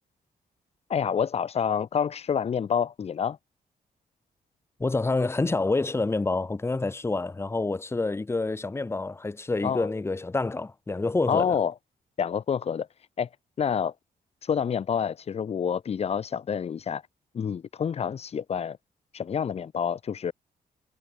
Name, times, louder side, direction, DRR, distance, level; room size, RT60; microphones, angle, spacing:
voice 1, 0.9-3.4 9.6-9.9 11.3-11.7 12.2-12.9 13.2-13.3 13.6-13.9 14.4-17.0 17.3-18.8 19.1-20.3, left 7 dB, 40° left, 1.0 m, -28 dB
voice 2, 4.8-11.6, left 3 dB, 15° left, 2.4 m, -27 dB
wide cardioid pair, 160°, 16 cm